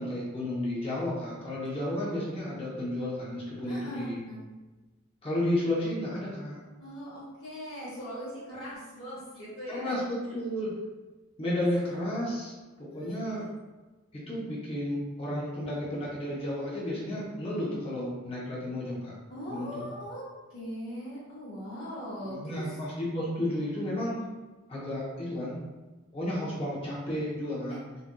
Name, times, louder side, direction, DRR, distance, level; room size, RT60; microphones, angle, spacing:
voice 1, 0.0-4.2 5.2-6.6 9.7-10.7 11.4-13.4 14.1-19.1 19.5-19.8 22.2-24.2 24.7-25.6 26.1-27.8, left 1 dB, 25° left, -6 dB, 0.8 m, -32 dB
voice 2, 3.6-4.4 6.8-9.9 10.2-10.4 11.7-11.8 12.9-13.1 16.0-16.2 19.3-22.8, equal, 50° left, -12 dB, 1.1 m, -40 dB
3.8 x 2.5 x 2.3 m, 1.2 s
head